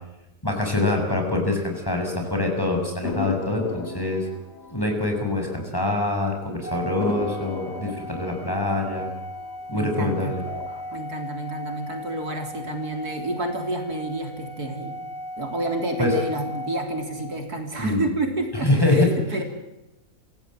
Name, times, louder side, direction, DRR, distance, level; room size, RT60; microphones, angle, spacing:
voice 1, 0.4-4.3 4.7-9.1 9.7-10.4 16.0-16.1 17.8-18.1 18.6-19.2, left 2 dB, 15° left, 2 dB, 6.4 m, -24 dB
sound 1, 3.0-6.1 6.4-6.5 7.0-9.9 10.4-11.0, left 4 dB, 90° left, 3.5 m, -36 dB
Organ, 6.6-17.5, equal, 50° left, 2.8 m, -37 dB
voice 2, 9.7-10.3 10.9-15.0 15.4-19.4, right 2 dB, 70° right, 4 dB, 4.1 m, -29 dB
27.0 x 16.5 x 7.7 m, 0.96 s
omnidirectional pair, 1.7 m